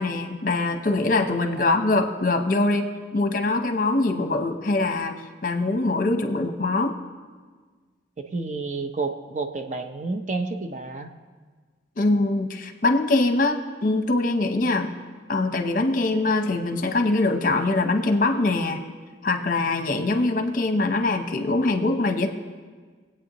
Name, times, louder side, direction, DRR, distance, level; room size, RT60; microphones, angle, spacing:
voice 1, 0.0-5.2 5.4-6.9 12.0-14.9 15.3-18.8 19.2-22.3, left 2 dB, 50° left, 6 dB, 0.9 m, -23 dB
voice 2, 8.2-11.1 19.9-20.0, right 3 dB, 40° right, 6 dB, 0.7 m, -30 dB
22.5 x 8.5 x 3.0 m, 1.5 s
head